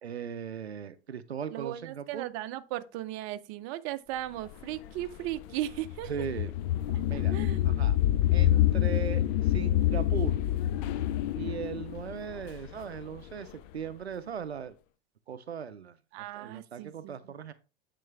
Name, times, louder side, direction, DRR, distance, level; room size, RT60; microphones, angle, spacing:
voice 1, 0.0-2.3 6.1-6.5 7.1-7.3 7.6-8.0 8.3-10.4 11.3-14.7 15.3-16.0 16.3-17.5, right 7 dB, 85° right, 0.6 m, -38 dB
voice 2, 1.5-6.1 7.1-7.7 16.1-17.3, right 14 dB, 45° right, 0.7 m, -37 dB
sound 1, 4.5-13.5, left 13 dB, 50° left, 0.5 m, -27 dB
9.2 x 3.8 x 3.4 m
figure-of-eight pair, 85°, 31 cm